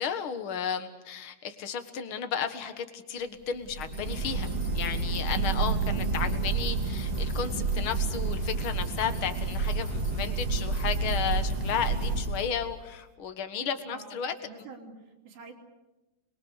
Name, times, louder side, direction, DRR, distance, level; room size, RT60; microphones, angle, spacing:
voice 1, 0.0-4.5 4.7-14.3, left 7 dB, 55° left, 8 dB, 1.6 m, -33 dB
sound 1, 3.6-12.8, right 4 dB, 45° right, 2.6 m, -29 dB
sound 2, 3.8-12.5, left 4 dB, 25° left, 2.1 m, -52 dB
voice 2, 5.9-6.5 13.9-14.2 14.4-15.5, right 5 dB, 70° right, 2 dB, 5.0 m, -46 dB
29.5 x 22.0 x 6.7 m, 1.0 s
omnidirectional pair, 4.4 m